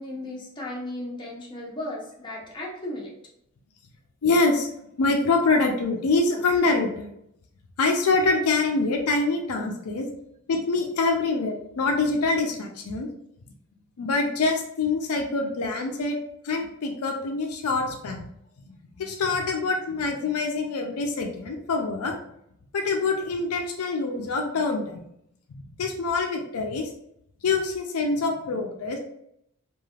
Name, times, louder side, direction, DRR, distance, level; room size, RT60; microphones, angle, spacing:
voice 1, 0.0-3.1, left 1 dB, 20° left, -3 dB, 0.7 m, -35 dB
voice 2, 4.2-4.7 5.0-7.1 7.8-10.1 10.5-13.1 14.0-16.2 16.4-18.3 18.7-22.1 22.7-25.0 25.5-26.9 27.4-29.0, left 3 dB, 75° left, 3 dB, 0.4 m, -25 dB
3.2 x 2.4 x 2.3 m, 0.75 s
head